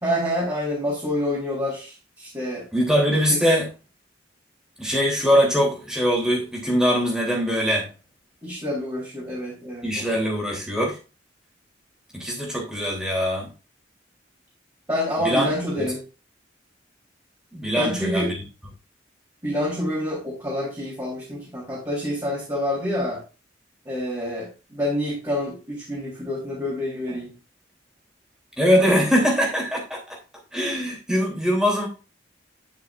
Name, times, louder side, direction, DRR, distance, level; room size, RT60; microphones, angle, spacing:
voice 1, 0.0-2.7 3.1-3.4 8.4-10.1 14.9-16.0 17.8-18.4 19.4-23.2 23.9-27.3, left 1 dB, 20° right, -7 dB, 3.6 m, -27 dB
voice 2, 2.7-3.7 4.8-7.9 9.8-11.0 12.1-13.5 15.2-15.5 15.8-15.9 17.5-18.4 28.6-30.2 30.5-31.9, equal, 5° right, -2 dB, 3.2 m, -22 dB
11.0 x 6.1 x 2.5 m, 0.33 s
head